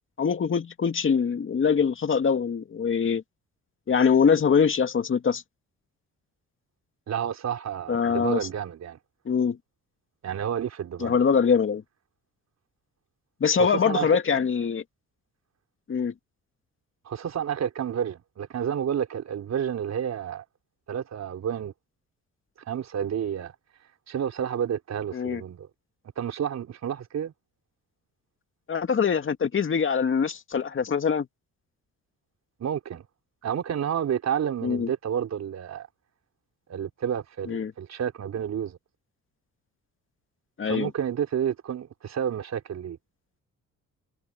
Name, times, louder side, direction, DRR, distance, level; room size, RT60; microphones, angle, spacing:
voice 1, 0.2-3.2 3.9-5.4 7.9-8.4 9.3-9.6 11.0-11.8 13.4-14.8 15.9-16.1 25.1-25.4 28.7-31.3 34.6-34.9 37.5-37.7 40.6-40.9, left 6 dB, 45° left, 2.3 m, -23 dB
voice 2, 7.1-9.0 10.2-11.2 13.6-14.2 17.1-20.4 20.9-21.7 22.7-23.5 24.1-25.7 26.2-27.3 32.6-33.1 33.4-35.9 36.7-38.8 40.6-43.0, right 9 dB, 60° right, 3.9 m, -30 dB
cardioid pair, 90°, 30 cm